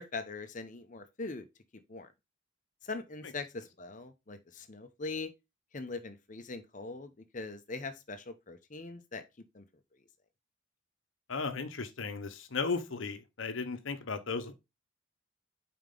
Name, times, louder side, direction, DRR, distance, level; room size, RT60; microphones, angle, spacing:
voice 1, 0.0-1.5 1.9-2.1 2.8-5.3 5.7-9.2 9.5-9.7, left 3 dB, 40° left, 0.8 m, -41 dB
voice 2, 11.3-14.5, left 4 dB, 70° left, 0.9 m, -35 dB
5.4 x 4.7 x 3.8 m
head